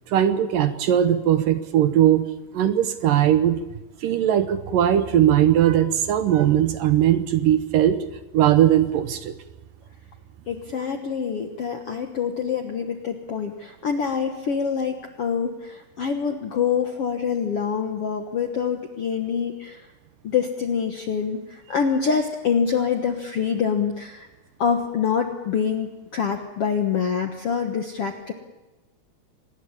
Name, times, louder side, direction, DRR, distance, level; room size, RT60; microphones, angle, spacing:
voice 1, 0.1-2.3 2.5-3.6 4.0-8.0 8.3-9.3, right 11 dB, 70° right, 10 dB, 2.4 m, -19 dB
voice 2, 10.5-19.8 20.2-24.3 24.6-28.3, left 6 dB, 65° left, 4 dB, 1.5 m, -25 dB
25.5 x 20.0 x 7.2 m, 1.1 s
omnidirectional pair, 4.6 m